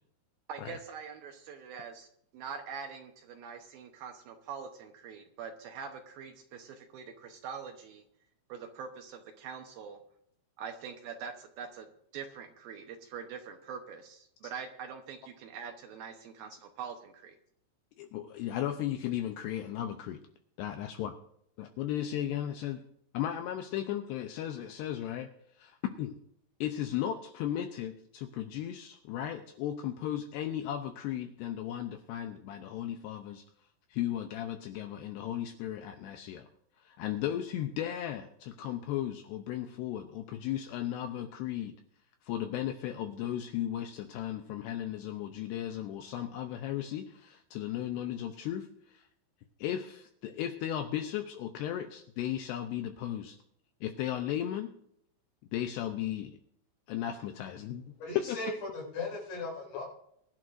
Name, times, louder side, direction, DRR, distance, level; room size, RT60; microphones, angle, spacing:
voice 1, 0.5-2.1 2.3-8.0 8.5-10.0 10.6-11.9 12.1-17.4, right 6 dB, 80° right, 4 dB, 2.1 m, -44 dB
voice 2, 18.0-20.2 20.6-21.1 21.6-22.8 23.1-25.3 25.6-26.1 26.6-33.4 33.9-36.5 36.8-41.7 42.2-49.1 49.6-53.4 53.8-54.7 55.5-56.4 56.9-57.8 58.2-58.4, left 11 dB, 85° left, 7 dB, 2.4 m, -35 dB
voice 3, 58.0-59.9, left 2 dB, 60° left, -4 dB, 8.3 m, -37 dB
23.0 x 11.0 x 2.6 m, 0.72 s
omnidirectional pair, 5.5 m